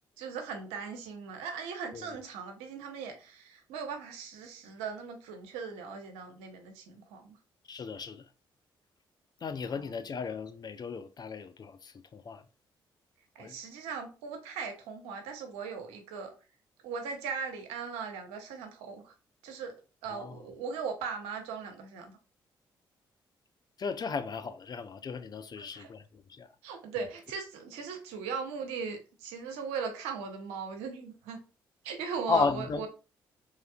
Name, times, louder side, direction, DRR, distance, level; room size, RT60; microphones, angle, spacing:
voice 1, 0.2-7.4 9.7-9.9 13.3-16.3 16.8-19.1 19.4-19.7 20.0-22.2 25.6-25.9 26.6-31.4 31.8-32.9, right 5 dB, 80° right, 0.6 m, -39 dB
voice 2, 7.7-8.3 9.4-12.4 13.4-13.6 20.1-20.4 23.8-26.5 32.3-32.9, left 5 dB, 40° left, 0.4 m, -35 dB
3.1 x 2.3 x 2.3 m
hypercardioid pair, 45°, 11 cm